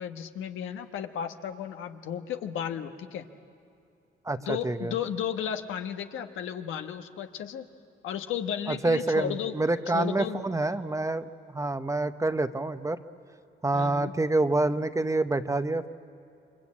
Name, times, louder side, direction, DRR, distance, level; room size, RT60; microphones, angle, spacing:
voice 1, 0.0-3.2 4.4-7.7 8.0-9.5 9.9-10.4 13.7-14.1, left 9 dB, 80° left, 6 dB, 1.3 m, -34 dB
voice 2, 4.2-4.9 8.7-13.0 13.6-15.9, right 2 dB, 15° right, 10 dB, 0.9 m, -27 dB
28.5 x 24.5 x 8.6 m, 2.5 s
cardioid pair, 90°, 20 cm